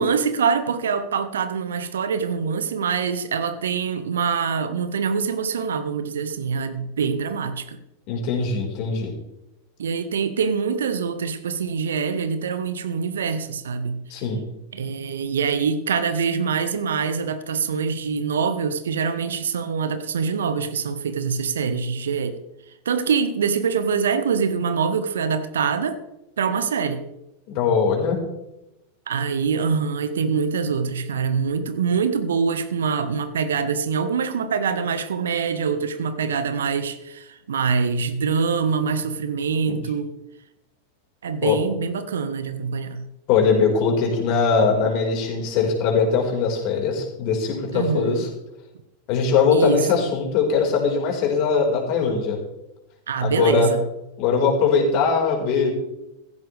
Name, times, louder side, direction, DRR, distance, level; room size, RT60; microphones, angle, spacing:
voice 1, 0.0-7.8 9.8-14.0 14.7-22.4 22.8-26.0 26.4-27.0 29.1-40.1 41.2-43.0 47.7-48.2 49.5-49.8 53.1-53.9, right 6 dB, 65° right, 10 dB, 1.3 m, -24 dB
voice 2, 8.1-9.1 14.1-14.4 27.5-28.2 39.7-39.8 41.4-41.6 43.3-48.3 49.1-52.4 53.2-53.7 54.2-55.7, left 5 dB, 45° left, 0 dB, 5.0 m, -21 dB
16.5 x 15.0 x 3.5 m, 0.88 s
figure-of-eight pair, 90°, 0 cm